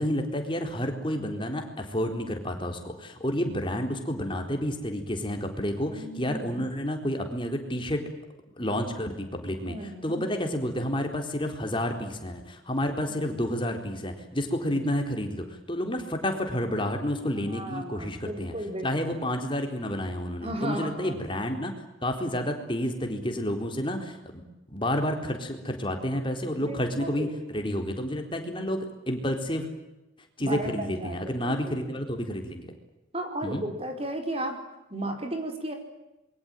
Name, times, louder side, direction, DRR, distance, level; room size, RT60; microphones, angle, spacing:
voice 1, 0.0-8.0 8.6-18.5 18.8-21.7 22.0-24.4 24.7-29.7 30.4-32.7 33.4-33.6, equal, 25° left, 4 dB, 4.1 m, -30 dB
voice 2, 5.9-6.7 9.7-10.3 13.0-13.2 17.5-18.9 20.4-21.2 26.6-27.3 30.4-31.7 33.1-34.6 34.9-35.7, right 1 dB, 30° right, 5 dB, 4.8 m, -35 dB
27.0 x 23.0 x 9.1 m, 0.97 s
head